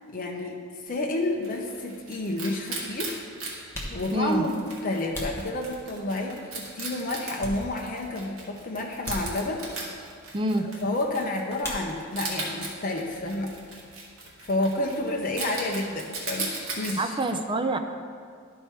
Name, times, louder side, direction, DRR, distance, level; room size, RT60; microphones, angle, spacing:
voice 1, 0.1-3.2 3.8-4.5 4.8-9.6 10.8-13.5 14.4-17.2, left 2 dB, 40° left, 0 dB, 0.6 m, -30 dB
Wild animals, 1.0-17.0, right 3 dB, 70° right, 1.7 m, -39 dB
sound 1, 3.7-6.2 6.7-8.1 8.4-8.5 9.0-9.8 11.6-12.4 12.6-13.3 13.6-15.8, equal, 10° left, 1.1 m, -40 dB
voice 2, 4.1-4.4 10.3-10.7 17.0-17.8, right 2 dB, 25° right, 5 dB, 0.4 m, -26 dB
11.5 x 4.5 x 4.5 m, 2.2 s
head